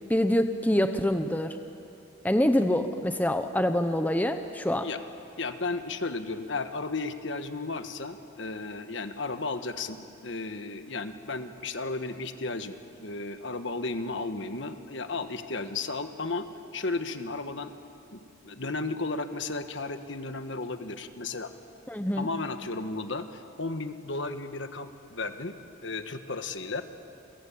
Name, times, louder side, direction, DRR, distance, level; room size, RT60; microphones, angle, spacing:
voice 1, 0.1-1.6 2.2-4.9 21.9-22.3, left 1 dB, 10° left, 7 dB, 0.8 m, -25 dB
voice 2, 5.4-16.5 16.7-17.7 18.1-21.5 22.2-26.8, left 3 dB, 60° left, 9 dB, 1.4 m, -34 dB
29.5 x 23.0 x 8.6 m, 2.6 s
head